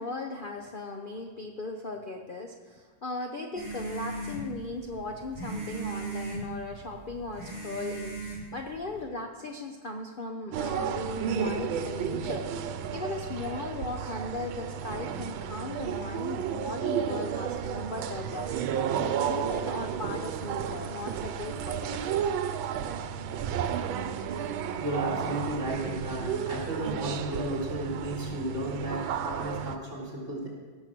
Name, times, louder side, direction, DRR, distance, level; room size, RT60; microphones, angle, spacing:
voice 1, 0.0-18.7 19.0-22.0, left 2 dB, 60° left, 3 dB, 0.5 m, -37 dB
sound 1, 3.6-9.0, right 3 dB, 10° left, 2.5 m, -38 dB
sound 2, 10.5-29.8, right 8 dB, 90° right, 1.5 m, -32 dB
voice 2, 24.5-30.5, right 1 dB, 40° right, -4 dB, 3.8 m, -33 dB
17.0 x 6.7 x 6.1 m, 1.4 s
omnidirectional pair, 2.1 m